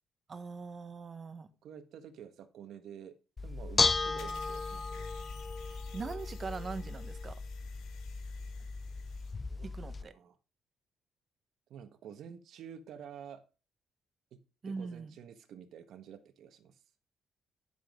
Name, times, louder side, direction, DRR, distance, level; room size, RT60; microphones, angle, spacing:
voice 1, 0.3-1.5 5.7-7.4 9.6-10.1 14.6-15.1, right 4 dB, 40° right, 12 dB, 1.2 m, -41 dB
voice 2, 1.6-3.2 3.4-5.1 9.5-9.7 10.0-10.4 11.7-13.4 14.3-16.8, right 8 dB, 75° right, 9 dB, 1.5 m, -50 dB
Bell / Dishes pots and pans, 3.4-10.0, left 4 dB, 30° left, 0.6 m, -35 dB
sound 1, 4.2-9.3, left 8 dB, 90° left, 2.4 m, -56 dB
10.0 x 7.7 x 3.8 m, 0.32 s
cardioid pair, 90°, 0 cm